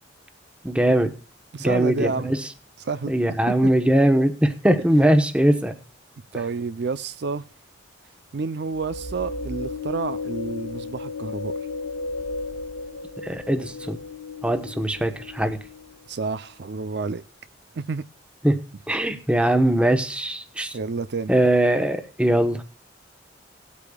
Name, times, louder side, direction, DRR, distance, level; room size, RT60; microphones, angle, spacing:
voice 1, 0.6-1.1 1.6-2.5 3.1-5.8 13.2-14.0 14.4-15.6 18.4-20.8 21.3-22.6, right 1 dB, 5° right, 0.9 m, -21 dB
voice 2, 1.5-2.4 2.8-3.1 3.6-3.7 6.3-7.4 8.3-11.5 16.1-17.2 17.7-18.0 20.7-21.3, right 4 dB, 55° right, 0.5 m, -29 dB
sound 1, 8.8-16.1, left 3 dB, 65° left, 2.3 m, -34 dB
18.5 x 8.4 x 2.3 m
head